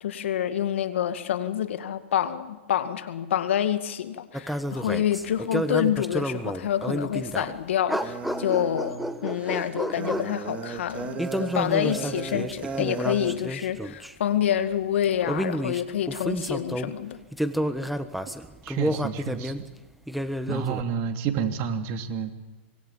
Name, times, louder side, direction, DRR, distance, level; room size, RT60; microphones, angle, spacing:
voice 1, 0.0-17.2, left 10 dB, 70° left, 10 dB, 2.1 m, -27 dB
sound 1, 4.3-7.6 7.9-10.4 11.2-14.1 15.0-17.0 17.3-19.6 20.1-20.8, equal, ahead, 1.3 m, -30 dB
sound 2, 8.0-13.4, right 4 dB, 20° right, 2.8 m, -36 dB
voice 2, 18.6-19.5 20.5-22.3, right 7 dB, 40° right, 6 dB, 2.8 m, -29 dB
25.0 x 22.0 x 7.4 m, 1.2 s
hypercardioid pair, 125°, 7 cm